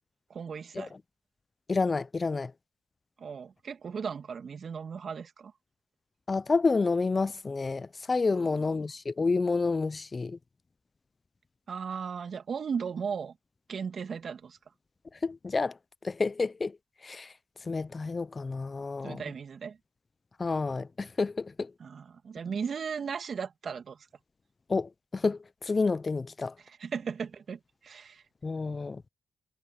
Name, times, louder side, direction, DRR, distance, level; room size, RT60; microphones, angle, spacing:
voice 1, 0.3-0.9 3.2-5.5 8.3-8.7 11.7-13.4 13.7-14.6 19.0-19.8 21.8-24.1 26.6-28.2, right 6 dB, 55° right, 2.8 m, -36 dB
voice 2, 1.7-2.5 6.3-10.4 15.2-15.7 16.0-16.8 17.0-17.3 17.7-19.2 20.4-21.7 24.7-26.5 28.4-29.0, left 4 dB, 35° left, 0.7 m, -29 dB
supercardioid pair, 50°, 0 cm